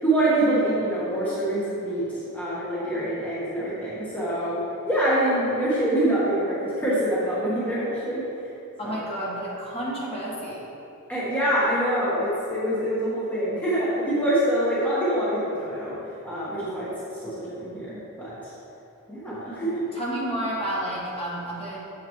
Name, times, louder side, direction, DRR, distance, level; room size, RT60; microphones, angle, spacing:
voice 1, 0.0-2.0 2.3-4.6 4.9-8.2 8.8-9.0 11.1-15.9 16.2-16.9 17.2-17.3 17.6-18.5 19.1-19.8, right 1 dB, 5° left, -10 dB, 1.3 m, -25 dB
voice 2, 8.8-10.6 19.6-21.9, right 1 dB, 25° left, -6 dB, 1.4 m, -31 dB
7.6 x 7.4 x 3.1 m, 2.9 s
head